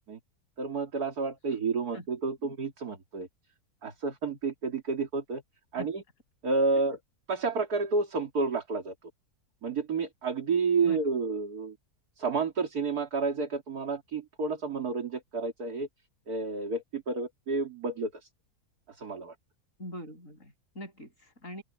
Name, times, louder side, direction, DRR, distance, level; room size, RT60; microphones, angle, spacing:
voice 1, 0.6-3.3 3.8-5.4 5.7-6.0 6.4-7.0 7.3-8.9 9.6-11.8 12.2-15.9 16.3-18.3 18.9-19.3, right 4 dB, 65° right, 3.0 m, -30 dB
voice 2, 10.8-11.2 19.8-21.6, equal, 50° left, 7.5 m, -43 dB
open air
omnidirectional pair, 1.7 m